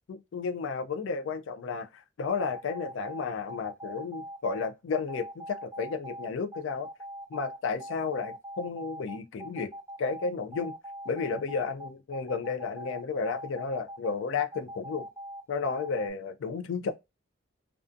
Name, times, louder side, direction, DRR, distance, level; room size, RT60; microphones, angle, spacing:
voice 1, 0.1-6.9 7.3-9.7 10.0-10.7 11.1-15.1 15.5-16.9, left 5 dB, 80° left, 0.4 m, -32 dB
sound 1, 2.4-16.1, equal, 15° right, 0.3 m, -42 dB
2.5 x 2.3 x 2.4 m
head